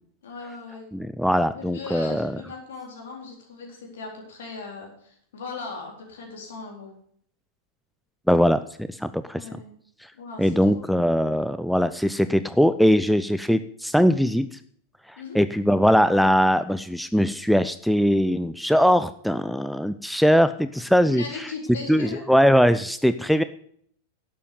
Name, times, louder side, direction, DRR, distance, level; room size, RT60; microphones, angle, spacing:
voice 1, 0.2-0.8 1.5-6.9 9.3-9.7 10.1-10.9 15.2-15.4 21.1-22.3, left 4 dB, 65° left, 0 dB, 4.2 m, -38 dB
voice 2, 0.9-2.3 8.3-9.4 10.4-14.5 15.3-21.2 21.9-23.4, equal, ahead, 12 dB, 0.5 m, -21 dB
11.5 x 7.5 x 6.8 m, 0.62 s
figure-of-eight pair, 90°, 0 cm